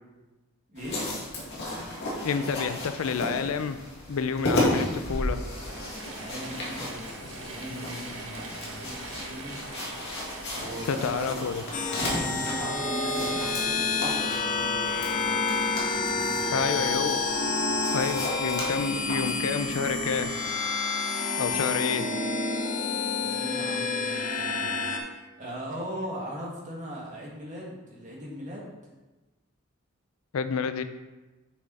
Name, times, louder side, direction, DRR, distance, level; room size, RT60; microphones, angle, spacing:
voice 1, 0.7-1.1 6.1-9.6 10.6-11.6 11.9-15.3 15.9-16.8 18.9-19.0 23.2-24.8 25.4-28.7, equal, 35° right, -4 dB, 1.9 m, -39 dB
sound 1, 0.8-20.5, left 1 dB, 55° left, 2.1 m, -35 dB
voice 2, 2.2-3.8 4.1-5.4 10.9-11.6 16.5-17.2 17.9-20.3 21.4-22.1 30.3-30.8, left 6 dB, 70° left, 11 dB, 0.4 m, -29 dB
Mechanisms / Drill, 5.3-13.9, right 2 dB, 60° right, 1.1 m, -43 dB
sound 2, 11.7-25.0, left 3 dB, 35° left, 0.8 m, -29 dB
6.4 x 5.8 x 4.1 m, 1.2 s
head